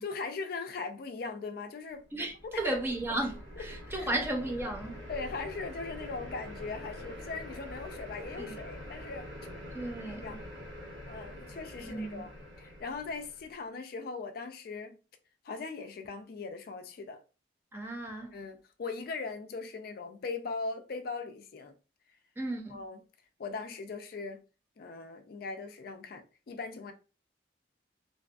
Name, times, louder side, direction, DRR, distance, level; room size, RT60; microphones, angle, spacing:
voice 1, 0.0-2.0 2.5-2.8 4.0-4.1 5.1-9.3 10.0-10.4 11.1-12.3 12.6-15.0 15.4-17.2 18.3-21.7 22.7-23.0 23.4-24.4 24.8-26.9, left 4 dB, 55° left, 0.4 m, -39 dB
voice 2, 2.1-5.0 8.4-8.6 9.7-10.4 11.8-12.2 17.7-18.4 22.4-22.8, right 1 dB, 10° right, 0.4 m, -34 dB
sound 1, 2.1-13.5, equal, 80° right, 1.4 m, -45 dB
2.6 x 2.4 x 2.3 m
head